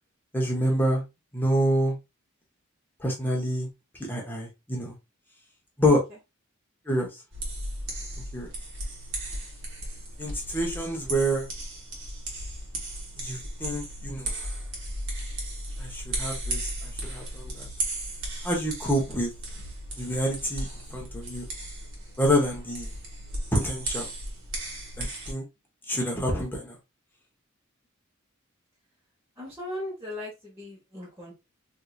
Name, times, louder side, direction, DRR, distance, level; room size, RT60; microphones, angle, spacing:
voice 1, 0.3-1.0 1.3-1.9 3.0-3.7 4.1-4.9 5.8-6.0 6.9-7.1 8.3-8.5 10.2-11.5 13.2-14.3 15.8-17.7 18.4-19.3 20.0-21.5 22.2-22.9 23.5-24.1 25.0-25.4 25.9-26.8, equal, 10° left, 1.1 m, -27 dB
voice 2, 5.8-6.2 29.4-31.3, left 1 dB, 10° right, 1.3 m, -38 dB
sound 1, 7.3-25.3, right 1 dB, 75° right, 1.5 m, -36 dB
3.6 x 2.8 x 2.4 m
head